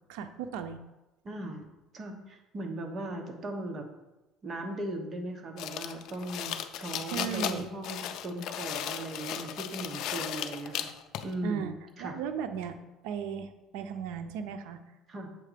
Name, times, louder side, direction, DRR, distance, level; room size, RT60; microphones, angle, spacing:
voice 1, 0.1-0.8 7.1-7.7 11.4-12.8 13.0-14.8, right 7 dB, 85° right, 8 dB, 0.5 m, -36 dB
voice 2, 1.2-1.7 1.9-3.9 4.4-10.9 11.2-11.7 12.0-12.1 15.1-15.3, right 1 dB, 35° right, 3 dB, 1.1 m, -38 dB
sound 1, 5.6-11.3, left 10 dB, 65° left, 0.4 m, -36 dB
7.7 x 3.7 x 5.0 m, 1.0 s
cardioid pair, 120°, 0 cm